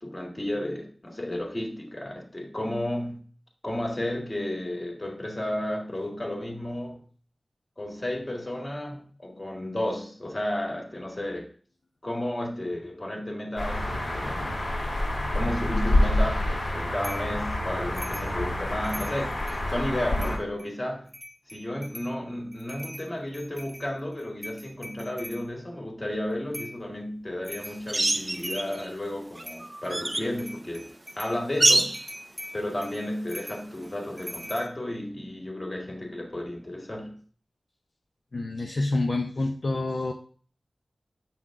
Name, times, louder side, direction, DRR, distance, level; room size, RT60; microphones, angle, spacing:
voice 1, 0.0-3.2 3.6-7.0 7.8-11.5 12.0-14.7 15.3-21.1 21.5-32.1 32.5-37.2, left 1 dB, 35° left, 1 dB, 1.9 m, -33 dB
sound 1, 13.6-20.4, left 1 dB, 80° left, 2.2 m, -27 dB
sound 2, 17.0-17.3 17.9-18.3 18.7-19.6 20.2-20.7 21.1-22.1 22.5-25.4 26.5-26.8 27.4-27.8 28.2-28.9 29.4-29.9 30.3-31.4 31.9-34.7, equal, 5° left, 1.5 m, -42 dB
sound 3, 27.9-28.9 29.4-30.3 31.6-32.1 34.4-34.5, right 1 dB, 25° right, 0.4 m, -25 dB
voice 2, 38.3-40.1, left 2 dB, 60° left, 2 dB, 0.6 m, -27 dB
7.8 x 5.8 x 3.6 m, 0.44 s
wide cardioid pair, 70°, 0 cm